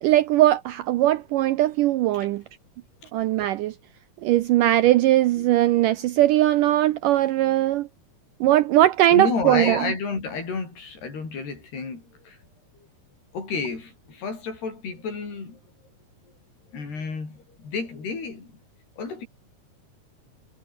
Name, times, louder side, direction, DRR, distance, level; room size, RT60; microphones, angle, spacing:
voice 1, 0.0-2.4 3.1-3.8 4.2-7.9 8.4-9.9, right 14 dB, 80° right, 1.9 m, -20 dB
voice 2, 9.1-12.4 13.3-15.6 16.7-18.6 19.0-19.3, left 4 dB, 85° left, 9.3 m, -31 dB
omnidirectional pair, 4.6 m